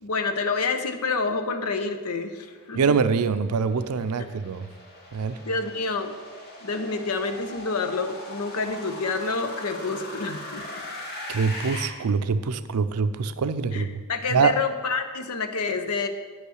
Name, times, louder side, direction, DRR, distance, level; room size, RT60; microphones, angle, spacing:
voice 1, 0.0-2.9 5.4-6.1 6.6-10.8 13.7-16.1, left 4 dB, 90° left, 8 dB, 0.8 m, -28 dB
sound 1, 2.3-11.9, left 1 dB, 45° left, 1.6 m, -40 dB
voice 2, 2.7-4.7 5.1-5.4 11.3-13.9 14.3-14.5, right 5 dB, 85° right, 12 dB, 0.5 m, -24 dB
9.1 x 5.5 x 6.4 m, 1.4 s
head